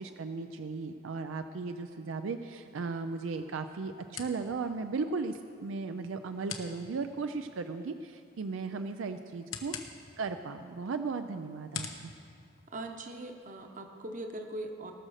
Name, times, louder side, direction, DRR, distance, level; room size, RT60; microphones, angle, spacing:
voice 1, 0.0-9.7 10.2-12.1, right 4 dB, 75° right, 8 dB, 0.4 m, -36 dB
sound 1, 2.4-13.3, left 6 dB, 85° left, 1.1 m, -48 dB
voice 2, 12.7-14.9, right 1 dB, 40° right, 4 dB, 1.0 m, -41 dB
18.5 x 6.4 x 6.4 m, 2.4 s
head